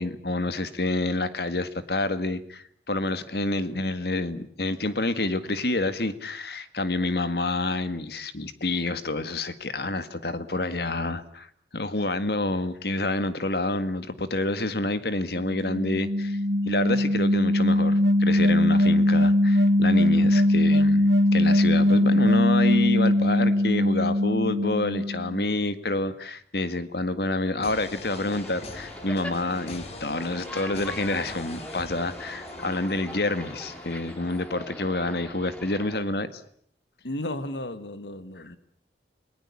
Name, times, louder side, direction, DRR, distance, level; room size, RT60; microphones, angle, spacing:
voice 1, 0.0-11.5 11.7-16.4 16.7-36.4, left 2 dB, 60° left, 1.8 m, -28 dB
sound 1, 15.3-25.5, left 1 dB, 70° right, 1.5 m, -21 dB
sound 2, 27.6-34.6, left 2 dB, 35° left, 2.6 m, -43 dB
sound 3, 28.0-36.0, equal, 5° left, 2.3 m, -42 dB
voice 2, 37.0-38.6, left 1 dB, 80° left, 1.8 m, -34 dB
29.0 x 19.5 x 8.5 m
head